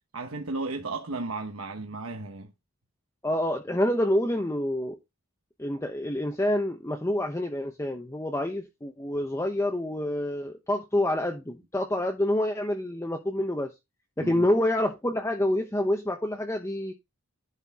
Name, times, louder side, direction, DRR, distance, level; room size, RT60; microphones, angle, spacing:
voice 1, 0.1-2.5 14.2-14.5, right 3 dB, 70° right, 1.1 m, -34 dB
voice 2, 3.2-5.0 5.6-13.7 14.2-16.9, left 1 dB, 15° left, 0.9 m, -27 dB
11.0 x 4.4 x 3.6 m
head